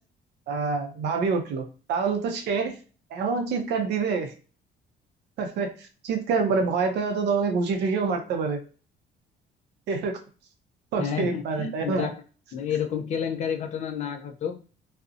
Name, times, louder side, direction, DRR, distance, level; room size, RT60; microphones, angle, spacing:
voice 1, 0.5-2.7 3.1-4.3 5.4-8.6 9.9-10.2 10.9-12.1, right 4 dB, 65° right, 4 dB, 0.5 m, -26 dB
voice 2, 11.0-12.2 12.5-14.6, left 8 dB, 40° left, 5 dB, 0.4 m, -30 dB
2.6 x 2.0 x 2.4 m, 0.36 s
cardioid pair, 160°, 19 cm